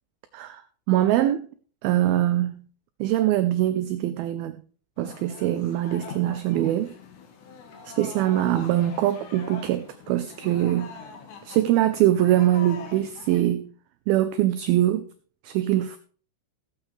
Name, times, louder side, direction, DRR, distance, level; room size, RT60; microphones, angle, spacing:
voice 1, 0.9-1.5 1.8-2.6 3.0-4.6 5.0-6.9 7.9-11.0 11.5-13.7 14.1-15.1 15.4-16.0, right 13 dB, 85° right, 11 dB, 2.2 m, -23 dB
sound 1, 5.0-13.4, left 6 dB, 80° left, 4.1 m, -43 dB
16.5 x 8.6 x 3.2 m, 0.42 s
omnidirectional pair, 5.0 m